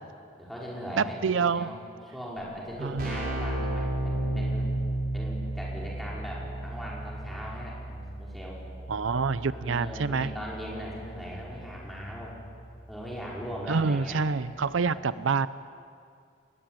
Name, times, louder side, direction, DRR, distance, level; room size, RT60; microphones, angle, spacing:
voice 1, 0.4-4.7 5.1-8.6 9.5-12.4 12.9-14.2 14.8-15.0, equal, ahead, -5 dB, 5.2 m, -39 dB
voice 2, 1.0-1.7 2.8-3.2 8.9-10.3 13.7-15.5, right 5 dB, 80° right, 15 dB, 0.6 m, -27 dB
Keyboard (musical), 2.4-2.5 2.7-13.3, right 1 dB, 50° right, 5.6 m, -34 dB
21.5 x 19.5 x 9.1 m, 2.3 s
head